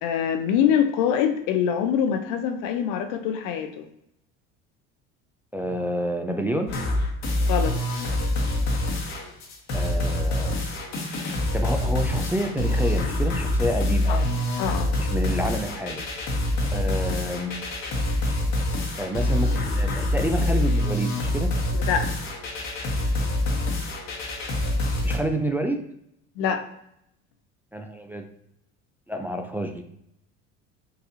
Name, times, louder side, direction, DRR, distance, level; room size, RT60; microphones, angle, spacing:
voice 1, 0.0-3.8 7.5-7.8 14.1-14.2 14.6-14.9 21.8-22.1 26.4-26.6, left 8 dB, 70° left, 8 dB, 0.6 m, -24 dB
voice 2, 5.5-6.8 9.7-10.6 11.5-14.3 15.0-16.0 16.7-17.6 19.0-21.5 25.0-25.8 27.7-28.2 29.1-29.8, right 1 dB, 5° right, 4 dB, 0.3 m, -28 dB
sound 1, 6.7-25.2, left 1 dB, 55° left, 1.2 m, -25 dB
4.0 x 2.7 x 2.6 m, 0.76 s
supercardioid pair, 80°, 33 cm